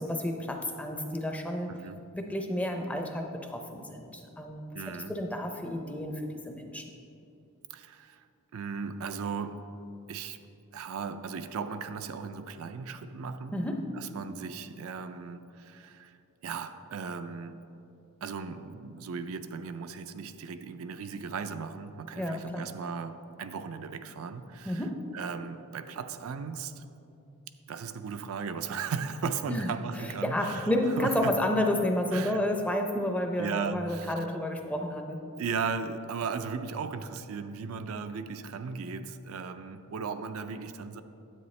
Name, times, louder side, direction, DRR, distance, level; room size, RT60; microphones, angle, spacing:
voice 1, 0.0-1.8 2.1-6.9 13.5-14.0 22.2-22.9 24.6-25.2 29.5-29.7 30.0-35.3, left 1 dB, 5° left, 3 dB, 0.5 m, -31 dB
voice 2, 4.7-5.1 7.7-8.2 8.5-9.7 10.1-10.4 10.7-13.6 14.0-17.6 18.2-24.8 25.1-26.8 27.7-30.7 31.0-31.3 32.1-32.4 33.4-34.1 35.4-41.0, right 5 dB, 70° right, 9 dB, 0.4 m, -36 dB
9.6 x 8.0 x 3.2 m, 2.7 s
head